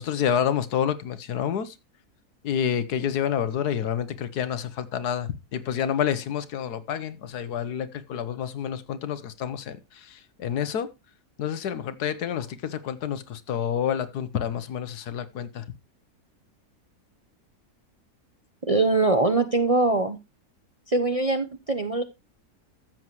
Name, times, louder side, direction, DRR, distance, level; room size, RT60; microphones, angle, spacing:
voice 1, 0.0-1.7 2.4-10.9 11.4-15.6, left 8 dB, 85° left, 1.5 m, -28 dB
voice 2, 18.7-20.2 20.9-22.0, right 3 dB, 35° right, 0.6 m, -22 dB
13.5 x 7.6 x 3.0 m
omnidirectional pair, 1.7 m